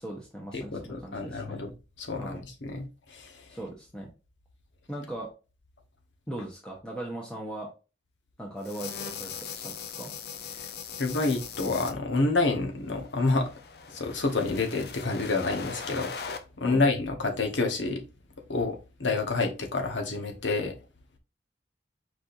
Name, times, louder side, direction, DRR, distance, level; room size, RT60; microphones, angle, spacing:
voice 1, 0.0-1.6 2.2-2.4 3.5-4.1 4.9-5.3 6.3-7.7 8.4-10.1 16.6-16.8, right 1 dB, 5° left, 0.8 m, -39 dB
voice 2, 0.5-1.7 2.0-3.4 11.0-13.5 13.9-16.1 16.6-18.0 18.5-20.7, left 3 dB, 85° left, 1.1 m, -28 dB
sound 1, 8.6-11.9 13.0-16.4, left 6 dB, 60° left, 0.6 m, -40 dB
4.8 x 4.2 x 2.6 m
head